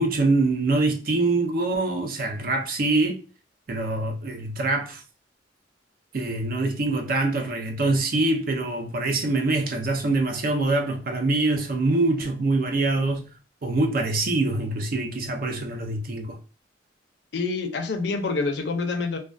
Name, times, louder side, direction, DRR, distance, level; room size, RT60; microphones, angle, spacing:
voice 1, 0.0-3.2 3.7-5.0 6.1-13.2 13.6-16.4, right 2 dB, 55° right, 0.5 m, -24 dB
voice 2, 17.3-19.2, left 3 dB, 70° left, 0.4 m, -27 dB
2.2 x 2.2 x 2.4 m
head